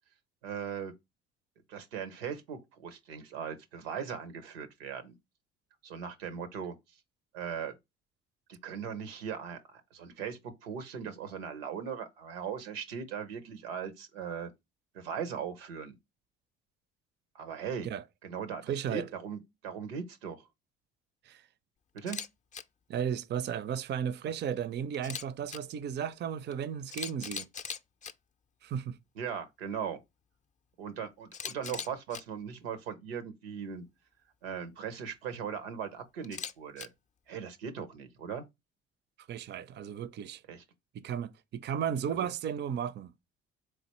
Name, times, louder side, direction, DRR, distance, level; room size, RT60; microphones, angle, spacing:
voice 1, 0.4-0.9 1.7-5.1 5.8-6.7 7.3-7.8 8.5-14.5 14.9-15.9 17.3-17.9 18.2-20.4 21.9-22.2 29.2-30.0 30.8-33.8 34.4-36.9 37.3-38.4 40.5-40.6, right 7 dB, 90° right, 0.7 m, -39 dB
voice 2, 18.6-19.1 21.2-21.5 22.9-27.5 28.6-29.0 39.3-40.4 40.9-43.1, right 8 dB, 35° right, 0.4 m, -34 dB
Camera, 22.0-22.3 22.5-22.6 24.9-25.6 26.5-26.6 26.9-28.1 31.3-32.2 36.2-36.9, left 6 dB, 25° left, 0.5 m, -39 dB
3.9 x 3.2 x 2.9 m
hypercardioid pair, 55°, 29 cm